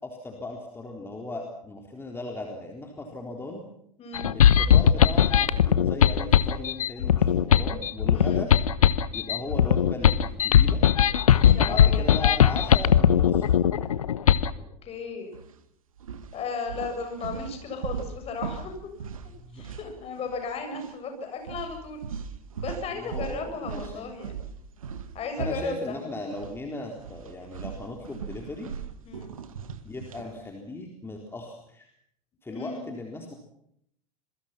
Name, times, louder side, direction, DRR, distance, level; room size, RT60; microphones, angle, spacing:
voice 1, 0.0-3.6 4.3-8.5 9.1-10.8 11.7-13.9 19.3-19.6 22.9-24.0 25.4-28.7 29.8-31.9 32.4-33.3, left 2 dB, 10° left, 1 dB, 3.9 m, -37 dB
voice 2, 4.0-4.3 8.1-8.5 11.1-12.2 14.8-15.3 16.3-18.7 19.5-22.1 22.6-24.5 25.1-26.0 29.0-29.3 32.5-32.8, left 4 dB, 35° left, 5 dB, 7.6 m, -35 dB
sound 1, 4.1-14.5, left 9 dB, 70° left, 1.1 m, -19 dB
sound 2, 15.3-15.5 16.0-20.5 20.7-20.9 21.5-26.6 26.9-30.3, right 6 dB, 70° right, 1.9 m, -39 dB
27.0 x 22.5 x 6.0 m, 0.73 s
figure-of-eight pair, 85°, 18 cm